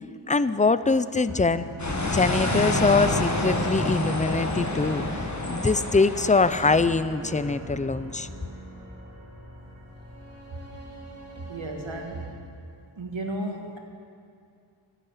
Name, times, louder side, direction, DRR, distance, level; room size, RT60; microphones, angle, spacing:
voice 1, 0.3-1.7 2.0-8.3, left 4 dB, 15° left, 14 dB, 0.4 m, -23 dB
sound 1, 1.2-12.3, right 1 dB, 35° right, 3.2 m, -42 dB
sound 2, 1.8-6.9, left 1 dB, 35° left, 1.7 m, -28 dB
voice 2, 11.3-12.3 13.0-13.8, right 1 dB, 80° right, 3 dB, 1.7 m, -34 dB
12.5 x 10.0 x 8.7 m, 2.5 s
wide cardioid pair, 70°, 46 cm